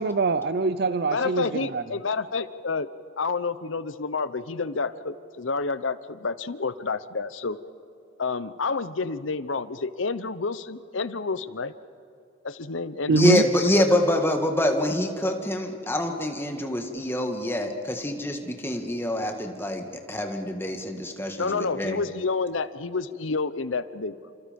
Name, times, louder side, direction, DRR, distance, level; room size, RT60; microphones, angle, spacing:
voice 1, 0.0-1.8 13.1-13.4, right 3 dB, 55° right, 12 dB, 0.6 m, -23 dB
voice 2, 1.1-2.9 3.2-7.6 8.2-11.7 12.4-13.5 13.7-13.8 21.4-24.2, left 4 dB, 85° left, 14 dB, 0.9 m, -29 dB
voice 3, 13.1-22.0, left 1 dB, 10° left, 3 dB, 1.9 m, -25 dB
29.0 x 27.0 x 5.3 m, 2.6 s
head